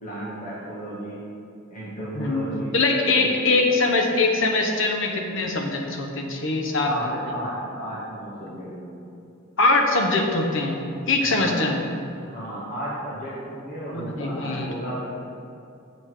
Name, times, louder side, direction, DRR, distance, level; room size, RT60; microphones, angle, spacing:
voice 1, 0.0-1.2 1.7-2.7 3.1-3.3 6.8-9.1 11.3-11.7 12.2-15.1, right 1 dB, 40° left, -8 dB, 1.8 m, -33 dB
voice 2, 2.7-6.9 9.6-10.8 11.1-11.8 13.9-14.7, left 3 dB, 65° left, 2 dB, 1.1 m, -22 dB
7.9 x 7.3 x 4.8 m, 2.5 s
head